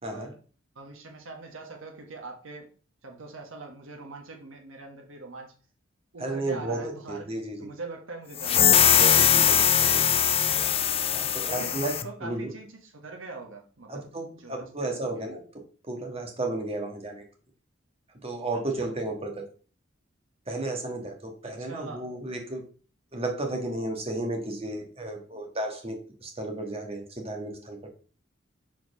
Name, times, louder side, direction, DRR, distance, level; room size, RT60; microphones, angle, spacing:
voice 1, 0.0-0.3 6.2-6.8 7.1-7.7 8.8-10.0 11.1-11.9 12.2-12.5 13.9-15.4 15.9-17.2 18.2-19.4 20.5-22.6 23.1-27.9, right 2 dB, 30° right, 3 dB, 1.6 m, -33 dB
voice 2, 0.7-2.7 3.0-5.5 6.1-8.9 11.4-14.1 14.4-15.3 18.5-18.9 21.4-22.1, right 3 dB, 85° right, 2 dB, 1.3 m, -42 dB
sound 1, 8.4-12.1, left 9 dB, 30° left, 0.5 m, -21 dB
4.5 x 4.5 x 5.9 m, 0.40 s
head